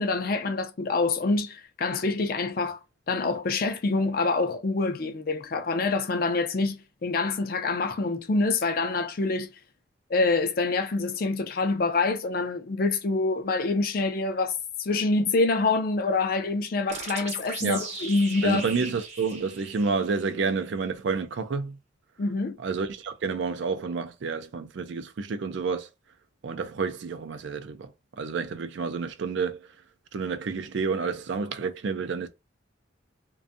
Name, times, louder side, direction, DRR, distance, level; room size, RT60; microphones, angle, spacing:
voice 1, 0.0-2.8 3.1-9.5 10.1-14.5 14.8-18.6 22.2-22.5, left 3 dB, 50° left, 0.4 m, -26 dB
sound 1, 16.9-20.4, right 4 dB, 35° right, 0.7 m, -38 dB
voice 2, 18.4-21.8 22.6-25.9 26.4-27.9 28.2-29.7 30.1-32.3, right 4 dB, 70° right, 0.4 m, -29 dB
2.5 x 2.2 x 2.5 m
head